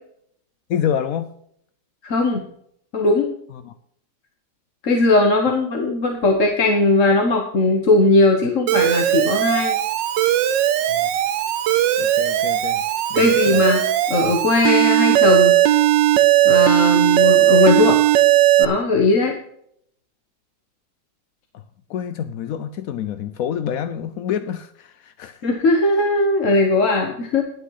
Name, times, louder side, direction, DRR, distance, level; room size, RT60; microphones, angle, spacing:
voice 1, 0.7-1.3 3.5-3.7 10.9-11.1 12.0-12.8 13.1-13.6 21.9-25.4, left 9 dB, 75° left, 11 dB, 0.8 m, -27 dB
voice 2, 2.0-2.5 2.9-3.3 4.8-9.8 12.2-12.3 13.1-15.6 16.4-18.0 18.6-19.4 25.4-27.4, left 2 dB, 45° left, 3 dB, 1.4 m, -18 dB
Alarm, 8.7-18.7, right 13 dB, 70° right, 1.4 m, -17 dB
11.0 x 8.9 x 5.6 m, 0.68 s
omnidirectional pair, 2.1 m